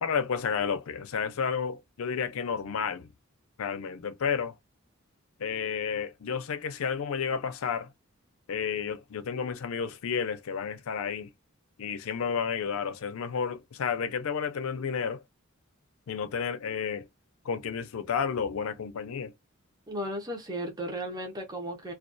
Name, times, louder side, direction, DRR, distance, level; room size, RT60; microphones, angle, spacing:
voice 1, 0.0-3.1 3.6-4.5 5.4-7.9 8.5-11.3 11.8-15.2 16.1-17.1 17.4-19.3, left 6 dB, 85° left, 0.5 m, -31 dB
voice 2, 19.9-21.9, equal, 20° right, 0.6 m, -35 dB
2.3 x 2.2 x 2.5 m
head